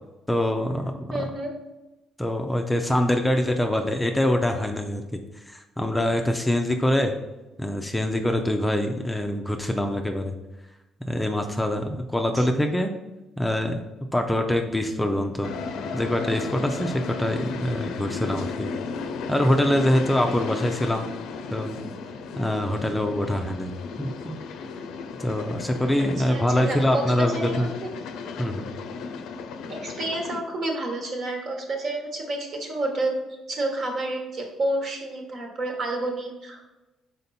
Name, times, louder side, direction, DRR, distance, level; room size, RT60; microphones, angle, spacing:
voice 1, 0.3-1.3 2.2-5.2 5.5-7.2 7.6-10.4 11.1-12.9 13.4-13.8 14.1-15.5 15.9-18.7 19.3-21.1 21.5-21.8 22.4-23.7 24.0-24.4 25.2-27.7 28.4-28.7, left 1 dB, 5° left, 4 dB, 0.5 m, -24 dB
voice 2, 1.1-1.5 12.3-12.4 26.0-27.9 29.7-33.1 33.5-36.6, right 2 dB, 55° right, 2 dB, 1.4 m, -30 dB
sound 1, 15.4-30.4, left 5 dB, 80° left, 0.5 m, -34 dB
5.3 x 4.4 x 4.2 m, 1.0 s
cardioid pair, 115°, 0 cm